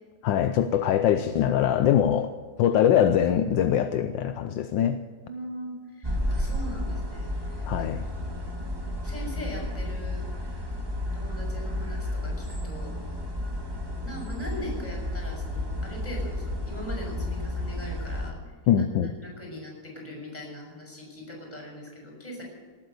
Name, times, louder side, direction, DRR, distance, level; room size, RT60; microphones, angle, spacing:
voice 1, 0.2-2.3 2.6-5.0 7.7-8.0 18.7-19.1, left 10 dB, 75° left, 9 dB, 1.4 m, -22 dB
voice 2, 5.2-7.9 9.0-10.2 11.1-12.9 14.0-18.4 18.8-22.4, left 1 dB, 20° left, 0 dB, 6.6 m, -40 dB
sound 1, 6.0-18.3, left 1 dB, 15° right, 1.8 m, -32 dB
18.5 x 9.3 x 8.0 m, 1.5 s
omnidirectional pair, 2.1 m